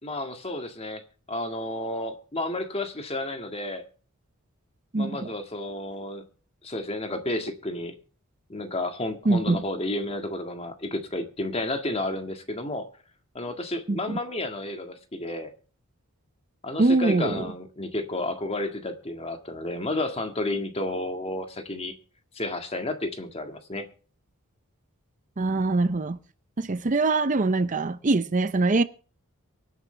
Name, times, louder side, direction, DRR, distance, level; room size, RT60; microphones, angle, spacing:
voice 1, 0.0-1.0 1.3-3.8 5.0-6.2 6.6-7.9 8.5-12.9 13.3-15.5 16.6-21.9 22.3-23.9, left 1 dB, 25° left, 1.7 m, -31 dB
voice 2, 9.3-9.6 13.9-14.2 16.8-17.4 25.4-26.2 26.6-28.8, right 3 dB, 35° right, 0.6 m, -23 dB
23.5 x 9.5 x 3.3 m
head